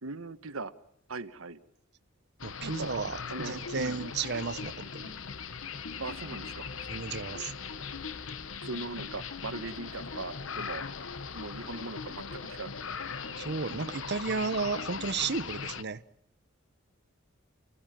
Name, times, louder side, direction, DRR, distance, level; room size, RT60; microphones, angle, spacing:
voice 1, 0.0-0.7 1.1-1.6 2.8-2.9 3.3-4.0 6.0-6.7 8.6-10.8 11.3-12.7, right 3 dB, 90° right, 10 dB, 1.4 m, -39 dB
sound 1, 2.4-15.8, left 5 dB, 70° left, 1.0 m, -39 dB
voice 2, 2.4-5.1 6.9-7.5 13.4-16.0, right 4 dB, 55° right, 12 dB, 0.9 m, -33 dB
29.0 x 16.0 x 9.2 m, 0.75 s
head